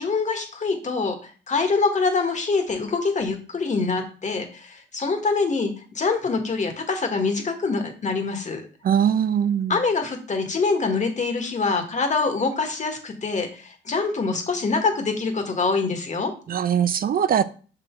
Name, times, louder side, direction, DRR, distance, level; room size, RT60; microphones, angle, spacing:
voice 1, 0.0-8.6 9.7-16.3, left 4 dB, 35° left, 1.5 m, -25 dB
voice 2, 8.8-9.8 16.5-17.4, right 8 dB, 50° right, 0.6 m, -21 dB
6.1 x 3.9 x 4.5 m
cardioid pair, 90°, 20 cm